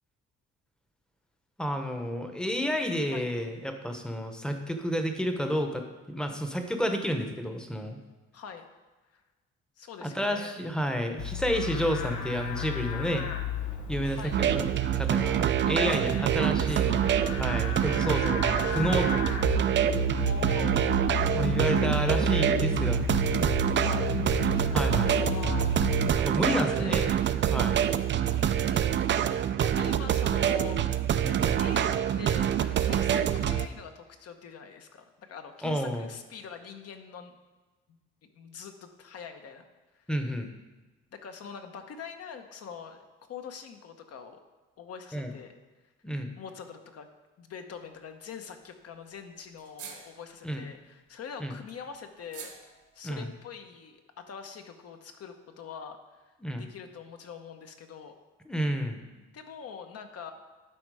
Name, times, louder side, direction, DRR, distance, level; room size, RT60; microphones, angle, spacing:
voice 1, 1.6-8.0 10.0-13.3 13.9-14.7 15.0-17.0 17.4-19.2 21.3-23.1 24.7-25.2 26.1-27.0 27.5-27.8 31.2-31.5 35.6-36.1 40.1-40.5 45.1-45.3 46.0-46.3 50.4-50.6 51.4-51.5 53.0-53.3 56.4-56.6 58.5-59.0, equal, 5° left, 5 dB, 0.9 m, -30 dB
voice 2, 8.3-8.7 9.1-9.2 9.8-10.6 14.0-14.4 15.6-17.6 20.2-21.0 21.9-22.5 23.8-24.1 24.7-26.2 26.5-27.6 28.2-29.1 29.6-30.9 31.3-31.9 32.2-37.4 38.3-39.6 39.9-40.1 41.1-43.0 43.3-44.4 44.8-45.5 46.3-47.1 47.4-52.5 52.9-56.0 56.5-58.1 59.2-60.3, left 6 dB, 55° left, 6 dB, 1.0 m, -43 dB
Livestock farm animals working animals, 11.2-26.1, left 4 dB, 90° left, 1.0 m, -33 dB
sound 1, 14.3-33.7, right 10 dB, 40° right, 0.4 m, -26 dB
sound 2, 47.7-48.1 48.3-48.4 48.6-48.7 49.0-49.1 49.5-50.5 51.1-53.2, right 7 dB, 75° right, 1.3 m, -47 dB
11.5 x 4.4 x 4.8 m, 1.2 s
cardioid pair, 110°, 29 cm